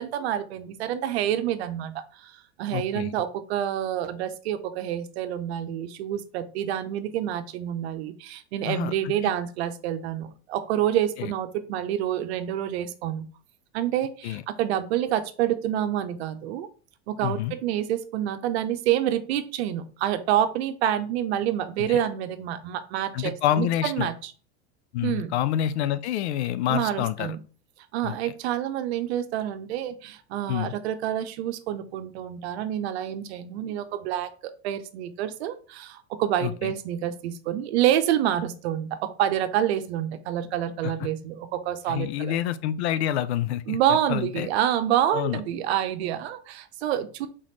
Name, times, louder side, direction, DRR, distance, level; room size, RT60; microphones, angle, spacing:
voice 1, 0.0-13.3 13.7-16.7 17.1-24.3 25.0-25.3 26.7-27.4 27.9-34.3 34.6-42.4 43.7-47.3, right 11 dB, 75° right, 11 dB, 0.7 m, -27 dB
voice 2, 2.7-3.1 8.7-9.1 11.2-11.3 14.2-14.4 17.2-17.5 21.9-22.0 23.1-24.1 24.9-27.4 28.0-28.3 30.5-30.7 36.4-36.7 40.8-41.1 41.9-44.5 45.1-45.4, left 11 dB, 75° left, 14 dB, 0.5 m, -28 dB
4.1 x 3.7 x 3.1 m, 0.40 s
hypercardioid pair, 110°, 33 cm